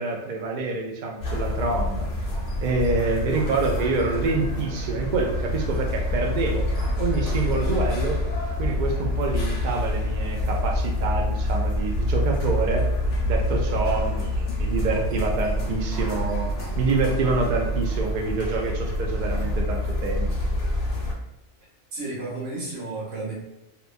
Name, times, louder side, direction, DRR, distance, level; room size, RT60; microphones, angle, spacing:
voice 1, 0.0-2.1 2.6-6.7 7.0-8.2 8.6-12.9 13.3-16.5 16.8-20.3, right 3 dB, 60° right, 1 dB, 0.5 m, -26 dB
sound 1, 1.2-21.1, left 1 dB, 75° left, 1.0 m, -26 dB
voice 2, 21.9-23.3, right 2 dB, 80° right, -6 dB, 1.3 m, -32 dB
2.9 x 2.2 x 2.5 m, 0.96 s
omnidirectional pair, 1.2 m